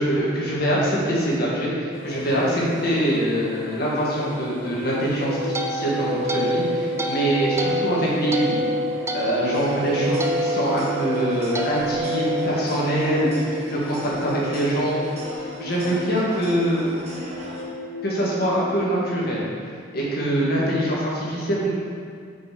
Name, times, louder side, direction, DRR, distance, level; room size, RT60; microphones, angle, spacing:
voice 1, 0.0-8.6 9.1-15.0 15.6-17.0 18.0-19.5 19.9-21.7, right 1 dB, 50° left, -6 dB, 1.8 m, -24 dB
sound 1, 1.9-19.4, left 2 dB, 85° left, 1.6 m, -35 dB
sound 2, 5.0-13.4, right 1 dB, 15° right, 0.4 m, -27 dB
sound 3, 9.5-17.6, right 1 dB, 30° right, 1.1 m, -39 dB
5.5 x 5.1 x 5.7 m, 2.2 s
head